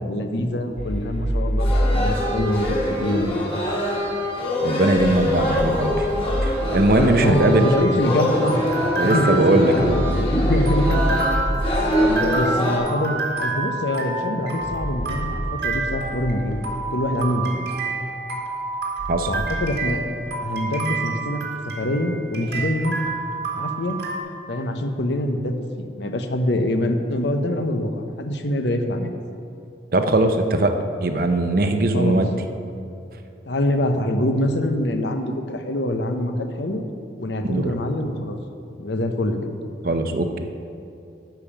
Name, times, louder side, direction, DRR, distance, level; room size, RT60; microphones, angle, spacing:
voice 1, 0.0-1.7 1.9-3.4 7.1-8.6 9.0-11.0 12.0-16.6 16.9-17.7 19.3-21.4 21.8-23.0 23.5-24.0 24.5-27.9 28.2-29.1 31.9-32.2 33.5-36.8 37.2-38.4 38.8-39.4, left 1 dB, 80° left, 6 dB, 0.8 m, -24 dB
sound 1, 0.8-3.1 4.9-7.5 9.8-12.3 14.6-17.2 19.0-19.7, equal, 55° left, 1.4 m, -27 dB
sound 2, 1.6-12.8, left 1 dB, 30° left, 2.0 m, -24 dB
voice 2, 4.6-6.1 6.4-7.7 9.0-10.0 19.1-19.3 29.9-30.7 31.0-32.3 37.4-37.7 39.8-40.4, right 2 dB, 55° right, 6 dB, 0.7 m, -20 dB
sound 3, 7.5-24.2, right 3 dB, 75° right, 1.8 m, -29 dB
10.5 x 5.2 x 7.1 m, 2.6 s
head